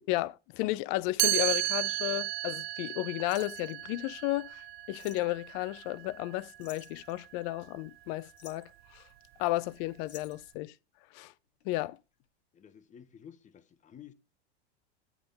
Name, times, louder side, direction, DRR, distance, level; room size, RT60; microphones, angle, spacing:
voice 1, 0.1-9.0 9.4-10.7 11.1-11.3 11.6-12.0, left 18 dB, 50° left, 0.5 m, -33 dB
Chime, 1.2-7.0, right 20 dB, 30° right, 0.4 m, -34 dB
sound 1, 1.4-2.3 2.9-3.0 3.3-3.8 5.0-5.4 6.6-7.7 8.2-8.8 10.0-10.6 11.6-12.0 12.2-12.3, left 10 dB, 80° left, 1.2 m, -53 dB
voice 2, 12.5-14.1, left 8 dB, 25° left, 0.9 m, -52 dB
8.4 x 3.7 x 5.2 m
hypercardioid pair, 105°, 33 cm